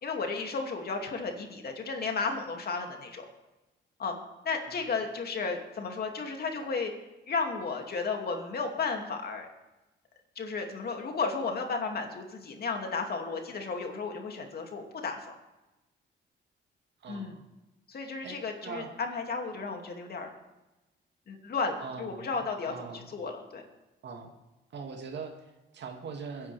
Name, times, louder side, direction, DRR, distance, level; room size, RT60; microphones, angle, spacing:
voice 1, 0.0-3.2 4.0-4.2 4.4-6.9 7.3-9.5 10.4-15.2 17.1-17.3 17.9-20.3 21.3-22.7 23.1-23.6, left 4 dB, 50° left, 3 dB, 2.5 m, -33 dB
voice 2, 17.0-17.4 18.2-19.0 21.8-22.4 22.7-23.1 24.0-24.4 24.7-26.5, right 5 dB, 60° right, 3 dB, 2.3 m, -42 dB
22.0 x 10.5 x 3.5 m, 1.0 s
cardioid pair, 90°, 20 cm